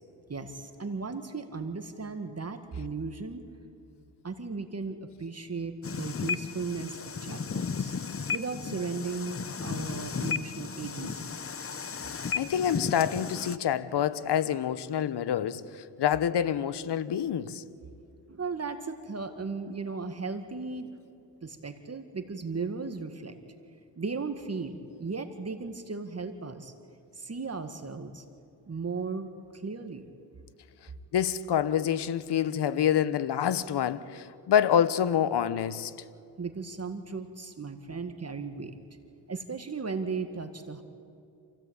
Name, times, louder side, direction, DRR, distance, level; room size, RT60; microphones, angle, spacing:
voice 1, 0.3-3.4 4.2-7.9 8.3-11.3 18.3-20.9 21.4-23.4 24.0-26.7 27.1-28.2 28.7-30.1 36.4-38.8 39.3-40.8, right 4 dB, 35° right, 1.9 m, -36 dB
Mariehamn crossingsounds, 5.8-13.6, left 6 dB, 30° left, 0.9 m, -35 dB
voice 2, 12.3-17.6 31.1-35.9, left 9 dB, 65° left, 1.2 m, -27 dB
28.0 x 16.5 x 8.9 m
cardioid pair, 65°, 43 cm